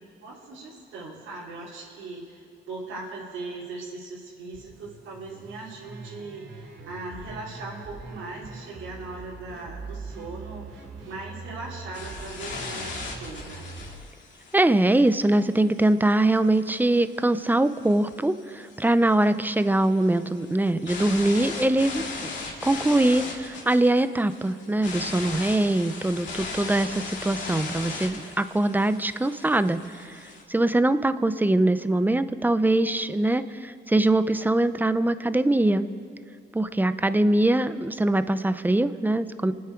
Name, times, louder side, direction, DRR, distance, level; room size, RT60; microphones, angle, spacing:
voice 1, 0.2-13.7, right 3 dB, 90° right, -7 dB, 2.9 m, -39 dB
sound 1, 4.5-14.0, right 3 dB, 70° right, 3.3 m, -42 dB
sound 2, 11.9-30.4, left 4 dB, 65° left, 2.2 m, -38 dB
voice 2, 14.5-22.3 22.6-30.2 30.5-35.9 36.5-39.5, right 1 dB, 10° right, 12 dB, 0.6 m, -23 dB
28.0 x 9.7 x 4.5 m, 2.2 s
cardioid pair, 90°, 20 cm